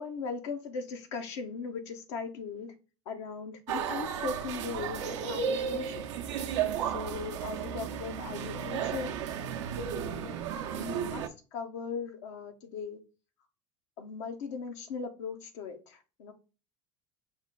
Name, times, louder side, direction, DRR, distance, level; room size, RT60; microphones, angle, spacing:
voice 1, 0.0-2.7 3.1-6.0 6.9-9.1 10.0-10.4 10.6-11.2 11.5-13.0 14.0-15.8 16.2-16.3, left 5 dB, 80° left, 0.8 m, -38 dB
sound 1, 3.7-11.3, right 8 dB, 80° right, 0.5 m, -34 dB
5.4 x 2.2 x 3.6 m
hypercardioid pair, 80°, 15 cm